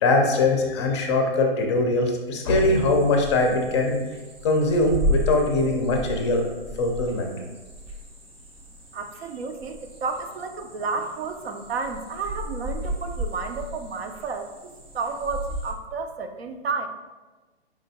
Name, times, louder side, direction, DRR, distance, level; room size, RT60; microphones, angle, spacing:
voice 1, 0.0-4.0 4.4-6.5 6.8-7.3, left 2 dB, 30° left, 3 dB, 0.5 m, -22 dB
sound 1, 2.5-15.7, equal, 20° right, 0.6 m, -34 dB
voice 2, 8.9-16.9, right 4 dB, 70° right, 6 dB, 0.6 m, -31 dB
4.9 x 3.3 x 2.7 m, 1.2 s
hypercardioid pair, 135°, 32 cm